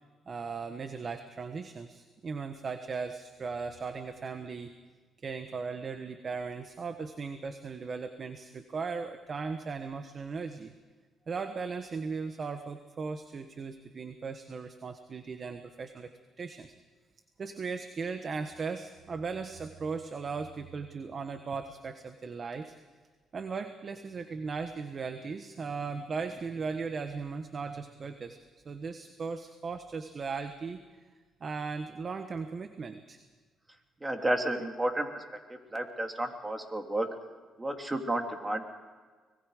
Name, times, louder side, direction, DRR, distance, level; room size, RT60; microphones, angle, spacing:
voice 1, 0.3-4.7 5.2-10.7 11.3-16.7 17.4-22.7 23.3-28.4 28.6-30.8 31.4-33.2, right 5 dB, 45° right, 8 dB, 1.3 m, -37 dB
voice 2, 34.0-35.2 35.5-37.1 37.6-38.7, right 1 dB, 20° right, 4 dB, 3.0 m, -32 dB
25.0 x 21.0 x 5.0 m, 1.4 s
cardioid pair, 90°, 0 cm